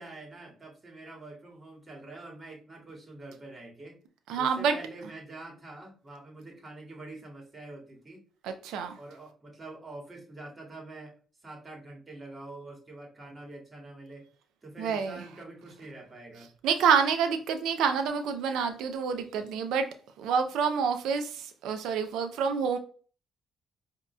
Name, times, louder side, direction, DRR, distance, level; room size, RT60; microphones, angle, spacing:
voice 1, 0.0-4.0 4.4-8.2 9.0-11.1 11.4-14.2 14.6-16.5, right 2 dB, 30° right, 2.0 m, -45 dB
voice 2, 4.3-4.8 8.4-9.0 14.8-15.2 16.6-19.9 20.2-22.8, right 6 dB, 90° right, 0.5 m, -27 dB
4.9 x 2.8 x 2.3 m
cardioid pair, 90°, 0 cm